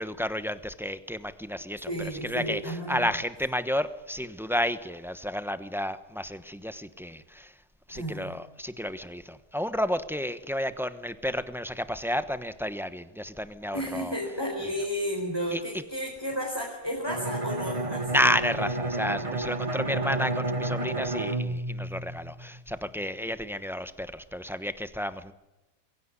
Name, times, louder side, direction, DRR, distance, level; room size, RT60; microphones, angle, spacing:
voice 1, 0.0-1.9 2.2-7.5 7.9-14.1 15.5-15.6 18.1-25.3, equal, ahead, 12 dB, 0.6 m, -31 dB
voice 2, 1.9-3.1 7.9-8.3 13.7-18.1, equal, 15° left, -1 dB, 4.1 m, -32 dB
Bowed string instrument, 17.1-22.7, right 2 dB, 20° right, 1.1 m, -31 dB
23.0 x 16.5 x 9.8 m, 1.0 s
omnidirectional pair, 1.9 m